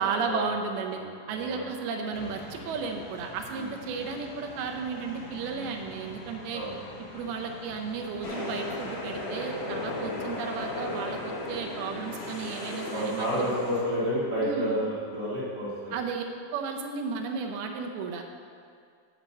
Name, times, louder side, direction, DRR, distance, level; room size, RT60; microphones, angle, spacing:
voice 1, 0.0-1.0 1.3-6.6 7.1-13.5 14.4-14.8 15.9-16.2 16.5-18.2, right 5 dB, 80° right, 3 dB, 2.4 m, -33 dB
voice 2, 0.9-1.7 2.0-2.3 3.5-3.7 6.5-6.7 9.8-10.3 12.9-15.9, equal, 55° right, -10 dB, 1.2 m, -31 dB
sound 1, 2.1-12.5, left 2 dB, 85° left, 3.4 m, -46 dB
sound 2, 8.2-13.8, left 2 dB, 65° left, 2.9 m, -35 dB
10.0 x 4.4 x 7.1 m, 2.2 s
omnidirectional pair, 4.9 m